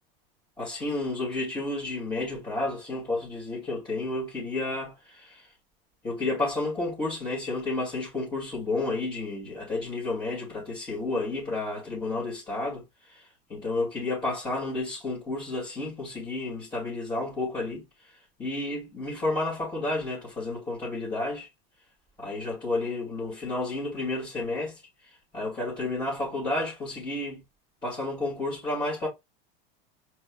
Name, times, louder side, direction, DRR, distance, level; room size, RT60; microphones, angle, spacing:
voice 1, 0.6-5.5 6.0-18.1 18.4-21.5 22.2-24.8 25.3-27.4 27.8-29.1, left 2 dB, 15° left, 2.5 m, -31 dB
5.2 x 3.5 x 2.3 m
supercardioid pair, 125°, 30 cm